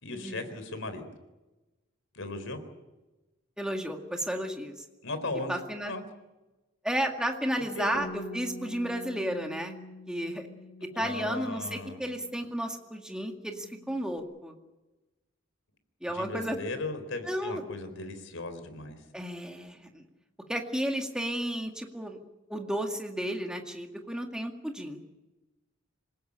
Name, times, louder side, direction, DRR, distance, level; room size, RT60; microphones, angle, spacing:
voice 1, 0.0-1.0 2.1-2.6 5.0-5.6 5.8-6.0 7.6-7.9 10.9-12.0 16.1-19.0, left 2 dB, 85° left, 9 dB, 4.1 m, -37 dB
voice 2, 3.6-4.7 5.5-5.9 6.8-9.7 10.1-10.5 11.0-14.5 16.0-16.6 17.3-17.6 19.1-20.0 20.5-22.2 22.5-25.0, equal, 5° right, 2 dB, 2.1 m, -33 dB
Bass guitar, 7.9-12.6 12.9-14.2, left 1 dB, 60° left, 3.4 m, -46 dB
27.0 x 17.0 x 8.7 m, 1.1 s
head